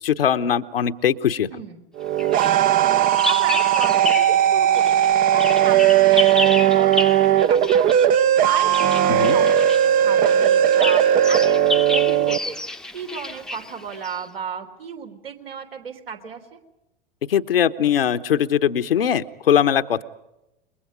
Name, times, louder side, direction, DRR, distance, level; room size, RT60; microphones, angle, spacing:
voice 1, 0.0-1.5 9.1-9.4 17.3-20.0, left 9 dB, 70° left, 10 dB, 1.1 m, -20 dB
voice 2, 1.5-1.8 3.2-5.0 5.3-8.0 8.5-12.6 12.9-16.6, right 6 dB, 70° right, 3 dB, 3.7 m, -34 dB
sound 1, 2.0-12.4, right 10 dB, 30° right, 0.8 m, -17 dB
Bird vocalization bird call bird song, 2.2-4.4 4.7-14.3, left 2 dB, ahead, 0.9 m, -30 dB
29.0 x 23.0 x 5.1 m, 0.90 s
figure-of-eight pair, 90°, 30 cm